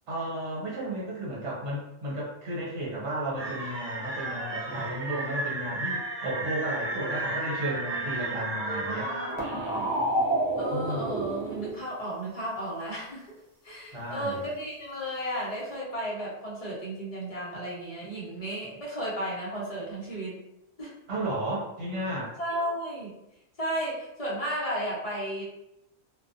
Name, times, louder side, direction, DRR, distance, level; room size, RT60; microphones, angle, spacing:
voice 1, 0.1-9.1 10.7-11.1 13.9-14.5 21.1-22.3, right 1 dB, 70° right, -5 dB, 1.2 m, -33 dB
sound 1, 3.4-11.7, right 1 dB, 40° right, 0.4 m, -31 dB
voice 2, 8.8-9.9 10.6-13.4 13.6-20.4 20.8-20.9 22.4-23.1 23.6-25.4, right 1 dB, 35° left, -6 dB, 0.8 m, -34 dB
2.3 x 2.2 x 2.5 m, 0.86 s
omnidirectional pair, 1.2 m